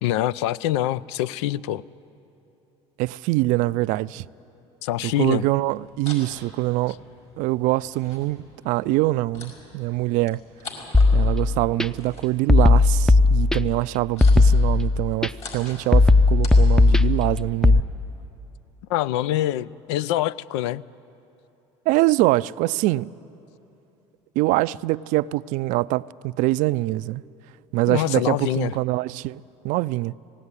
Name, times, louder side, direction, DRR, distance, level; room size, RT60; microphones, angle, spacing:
voice 1, 0.0-1.8 4.8-5.5 18.9-20.8 27.9-28.7, left 13 dB, 80° left, 0.4 m, -25 dB
voice 2, 3.0-4.3 5.0-7.0 7.4-10.4 11.1-17.8 21.9-23.1 24.4-27.2 27.7-30.1, right 18 dB, 65° right, 0.4 m, -24 dB
sound 1, 5.6-17.1, left 4 dB, 50° left, 5.4 m, -45 dB
sound 2, 10.9-11.9 12.5-13.8 14.2-15.3 15.9-17.8, left 3 dB, 5° left, 0.6 m, -16 dB
19.0 x 17.5 x 9.7 m
supercardioid pair, 85°, 14 cm